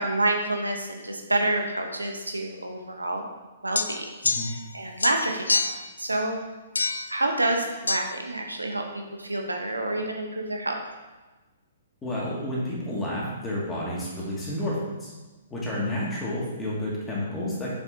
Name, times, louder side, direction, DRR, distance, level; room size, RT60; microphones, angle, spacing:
voice 1, 0.0-3.2 3.6-4.1 4.5-5.6 6.0-6.4 7.1-10.8, right 2 dB, 90° right, 2 dB, 0.9 m, -28 dB
sound 1, 3.8-4.7 5.0-5.9 6.8-7.1 7.9-8.0, left 3 dB, 75° left, 0.4 m, -27 dB
voice 2, 12.0-15.1 15.5-17.7, left 1 dB, 15° left, -6 dB, 2.2 m, -30 dB
7.0 x 6.2 x 2.8 m, 1.2 s
figure-of-eight pair, 120°, 0 cm